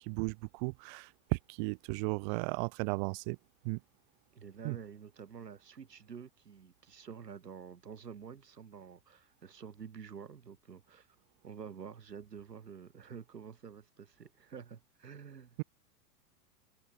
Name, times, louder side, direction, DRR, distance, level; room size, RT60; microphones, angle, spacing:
voice 1, 0.0-3.4 3.6-3.8 4.6-4.8, right 32 dB, 30° right, 0.5 m, -35 dB
voice 2, 4.3-11.1 11.4-15.6, right 7 dB, 75° right, 5.4 m, -49 dB
figure-of-eight pair, 95°, 49 cm